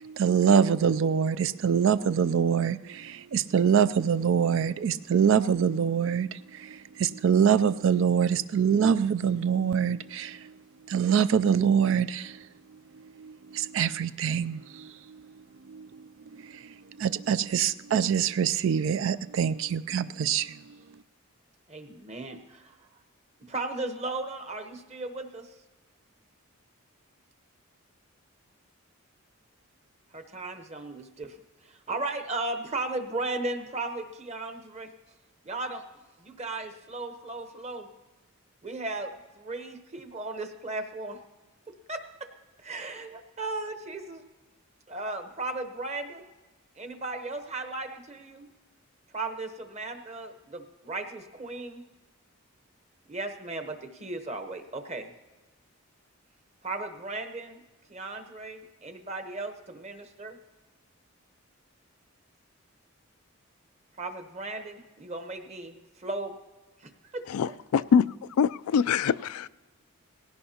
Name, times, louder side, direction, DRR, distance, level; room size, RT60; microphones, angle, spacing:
voice 1, 0.0-10.5 10.9-12.5 13.0-15.3 15.7-16.0 16.3-20.6, right 7 dB, 60° right, 14 dB, 0.3 m, -25 dB
voice 2, 21.7-22.8 23.4-25.5 30.1-31.4 31.6-34.9 35.4-35.8 36.2-37.9 38.6-41.2 41.7-42.3 42.6-44.2 44.9-46.2 46.8-48.5 49.1-51.8 53.1-55.1 56.6-57.6 57.9-60.4 64.0-66.3 66.8-67.6, right 2 dB, 30° right, 6 dB, 1.0 m, -36 dB
voice 3, 67.3-68.1 68.4-69.5, left 6 dB, 80° left, 16 dB, 0.3 m, -24 dB
18.5 x 16.5 x 2.9 m, 1.2 s
head